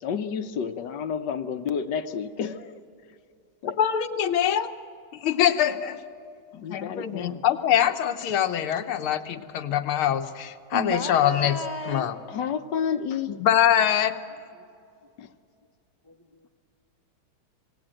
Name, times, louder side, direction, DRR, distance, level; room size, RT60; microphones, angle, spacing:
voice 1, 0.0-2.8 3.6-3.8 6.5-7.4 12.3-13.4 15.2-15.3, left 7 dB, 65° left, 9 dB, 1.4 m, -30 dB
voice 2, 3.8-4.7 5.2-6.0 6.7-11.6 11.9-12.2 13.4-14.2, left 10 dB, 85° left, 8 dB, 1.9 m, -23 dB
voice 3, 10.7-12.1 14.5-14.6 16.0-16.5, left 2 dB, 25° right, 2 dB, 0.7 m, -33 dB
27.0 x 19.0 x 9.0 m, 2.4 s
omnidirectional pair, 2.3 m